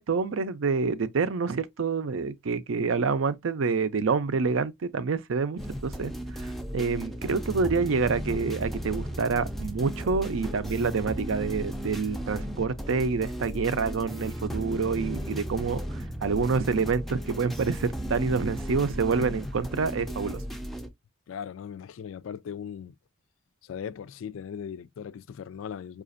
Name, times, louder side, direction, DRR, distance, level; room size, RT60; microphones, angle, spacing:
voice 1, 0.0-15.8 16.2-20.4, right 4 dB, 80° right, 0.5 m, -27 dB
sound 1, 5.6-20.9, equal, ahead, 0.4 m, -35 dB
voice 2, 21.3-22.9 23.6-26.0, left 7 dB, 75° left, 0.3 m, -38 dB
4.9 x 2.4 x 2.4 m
head